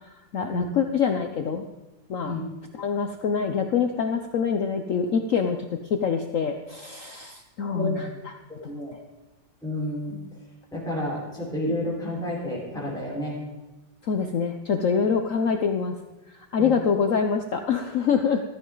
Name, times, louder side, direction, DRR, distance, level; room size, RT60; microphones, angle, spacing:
voice 1, 0.3-1.6 2.1-2.4 2.7-5.6 5.9-8.3 14.1-16.0 16.5-18.4, left 6 dB, 60° left, 5 dB, 0.9 m, -25 dB
voice 2, 8.6-8.9 9.6-10.2 10.7-13.4 16.6-16.7, left 1 dB, ahead, -6 dB, 4.5 m, -30 dB
15.0 x 13.5 x 3.9 m, 1.0 s
omnidirectional pair, 2.0 m